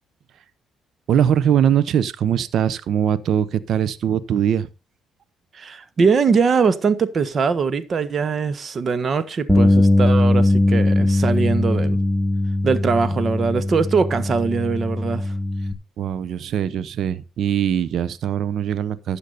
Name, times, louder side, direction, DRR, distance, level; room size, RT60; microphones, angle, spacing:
voice 1, 1.1-4.7 16.0-19.2, right 9 dB, 65° right, 0.8 m, -21 dB
voice 2, 5.6-12.0 12.6-15.3, right 5 dB, 45° right, 1.4 m, -21 dB
Bass guitar, 9.5-15.7, left 1 dB, ahead, 1.8 m, -19 dB
12.5 x 8.2 x 4.1 m
supercardioid pair, 75°, 0 cm